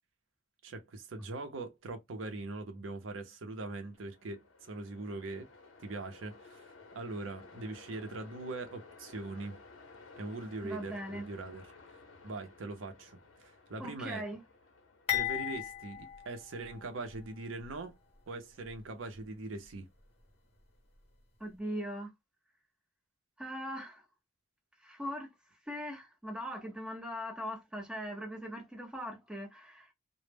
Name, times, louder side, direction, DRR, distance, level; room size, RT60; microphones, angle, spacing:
voice 1, 0.6-5.5 5.8-6.7 6.9-9.6 10.2-11.6 12.2-14.2 15.1-16.0 16.3-18.0 18.3-19.9, right 2 dB, 80° right, 0.6 m, -41 dB
Train, 3.8-20.8, left 3 dB, 85° left, 0.7 m, -57 dB
voice 2, 10.6-11.3 13.8-14.4 21.4-22.1 23.4-24.0 24.8-25.3 25.7-29.9, equal, 5° right, 0.7 m, -40 dB
sound 1, 15.1-17.2 17.6-17.8 18.6-18.8, left 11 dB, 30° left, 0.8 m, -36 dB
2.1 x 2.0 x 3.2 m
head